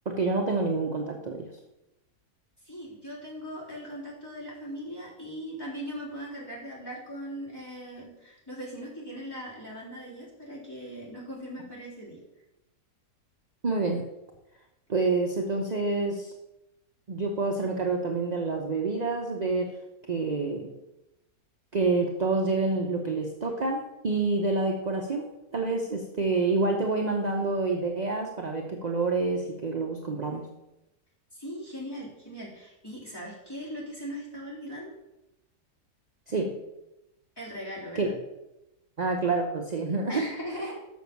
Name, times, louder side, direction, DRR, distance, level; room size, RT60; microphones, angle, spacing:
voice 1, 0.1-1.5 13.6-14.0 14.9-16.3 17.1-19.7 20.1-20.7 21.7-30.5 36.3-36.6 37.9-38.2 39.0-40.3, right 3 dB, 40° right, 2 dB, 0.6 m, -28 dB
voice 2, 2.6-12.2 31.3-34.9 37.4-38.1 40.1-40.7, equal, 15° left, -8 dB, 3.9 m, -39 dB
6.7 x 6.2 x 7.0 m, 0.92 s
omnidirectional pair, 1.7 m